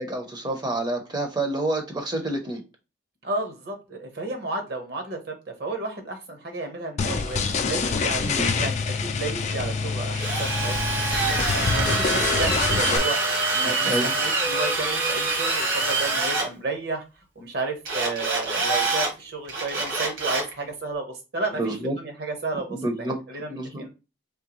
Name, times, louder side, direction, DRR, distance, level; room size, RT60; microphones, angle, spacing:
voice 1, 0.0-2.6 8.2-8.5 13.6-14.1 21.6-21.9 22.7-23.2 23.5-23.8, right 1 dB, 20° right, 0.6 m, -28 dB
voice 2, 3.2-5.3 5.6-11.4 11.7-13.2 13.5-17.0 17.4-23.9, right 3 dB, 50° right, 0.9 m, -32 dB
sound 1, 7.0-13.0, left 4 dB, 35° left, 0.3 m, -26 dB
Drill, 10.1-16.5 17.9-19.1 19.5-20.5, right 3 dB, 70° right, 1.8 m, -25 dB
3.6 x 3.2 x 3.0 m
head